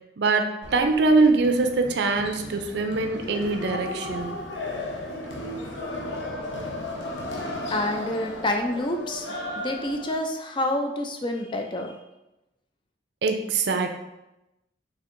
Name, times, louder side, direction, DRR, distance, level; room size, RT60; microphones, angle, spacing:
voice 1, 0.2-4.3 13.2-14.0, right 3 dB, 65° right, 6 dB, 0.4 m, -23 dB
sound 1, 0.6-10.2, left 1 dB, 80° left, 0.7 m, -35 dB
voice 2, 7.7-12.0, left 1 dB, 25° left, 4 dB, 0.4 m, -28 dB
4.3 x 3.4 x 2.6 m, 0.93 s
head